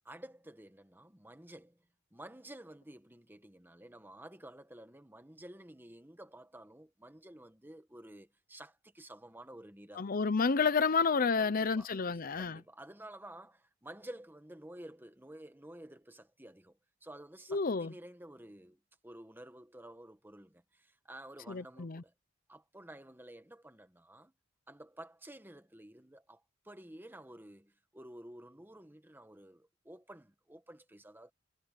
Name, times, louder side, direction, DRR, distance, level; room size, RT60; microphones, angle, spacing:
voice 1, 0.0-1.8 2.1-10.1 11.4-11.9 12.4-22.1 22.5-24.3 24.7-31.3, right 1 dB, 10° right, 1.6 m, -52 dB
voice 2, 10.0-12.6 17.5-17.9 21.5-22.0, left 5 dB, 45° left, 0.7 m, -30 dB
head